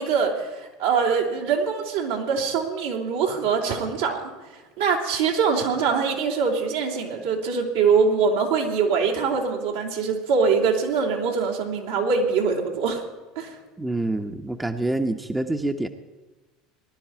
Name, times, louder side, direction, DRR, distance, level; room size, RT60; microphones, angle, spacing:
voice 1, 0.0-4.3 4.8-13.0 13.3-13.6, right 5 dB, 75° right, -1 dB, 3.2 m, -23 dB
voice 2, 13.8-15.9, right 2 dB, 10° right, 6 dB, 1.0 m, -26 dB
19.5 x 11.5 x 4.7 m, 1.2 s
hypercardioid pair, 75°, 0 cm